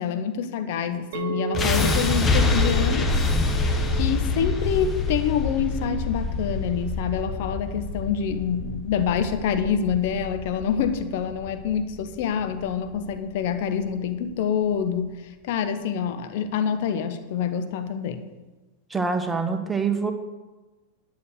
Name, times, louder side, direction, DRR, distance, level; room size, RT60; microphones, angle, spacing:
voice 1, 0.0-3.1 3.9-18.2, left 7 dB, 50° left, 9 dB, 1.0 m, -26 dB
Chink clink, 1.1-6.3, right 9 dB, 55° right, 1.0 m, -36 dB
sound 1, 1.5-13.6, left 3 dB, 20° left, 1.2 m, -26 dB
voice 2, 18.9-20.1, right 4 dB, 10° right, 6 dB, 1.2 m, -25 dB
11.0 x 7.2 x 6.5 m, 1.2 s
figure-of-eight pair, 90°, 0 cm